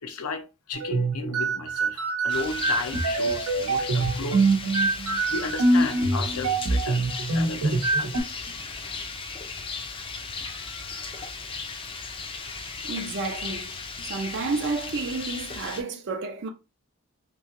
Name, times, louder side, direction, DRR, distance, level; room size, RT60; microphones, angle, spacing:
voice 1, 0.0-4.5 5.3-7.0 7.3-8.5 10.4-11.3, left 4 dB, 80° left, 0.6 m, -35 dB
sound 1, 0.7-8.2, right 3 dB, 90° right, 0.8 m, -24 dB
Rain, 2.3-15.8, left 4 dB, 25° left, 0.4 m, -36 dB
voice 2, 12.8-13.8 14.1-16.5, right 3 dB, 55° right, 0.5 m, -30 dB
3.1 x 2.7 x 2.5 m
head